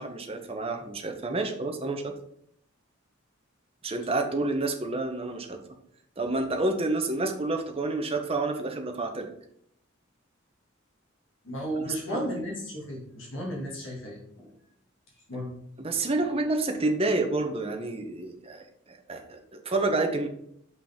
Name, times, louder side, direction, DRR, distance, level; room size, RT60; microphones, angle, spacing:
voice 1, 0.0-2.1 3.8-5.6 6.2-9.3 11.8-12.2 15.8-20.3, right 2 dB, 30° right, 5 dB, 0.7 m, -29 dB
voice 2, 11.4-14.5 15.3-15.5, equal, 70° left, -4 dB, 2.1 m, -34 dB
5.6 x 5.5 x 3.5 m, 0.69 s
head